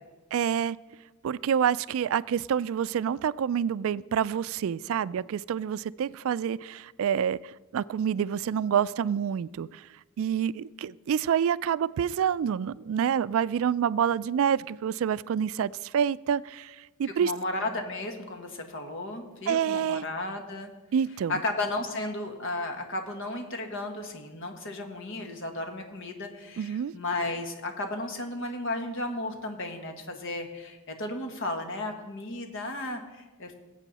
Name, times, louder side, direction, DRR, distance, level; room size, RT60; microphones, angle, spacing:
voice 1, 0.3-0.8 1.2-7.4 7.7-9.8 10.2-17.3 19.5-20.0 20.9-21.4 26.6-26.9, right 8 dB, 65° right, 19 dB, 0.3 m, -27 dB
voice 2, 17.2-20.7 21.3-33.5, left 2 dB, 60° left, 5 dB, 1.6 m, -34 dB
20.0 x 8.2 x 4.1 m, 1.2 s
head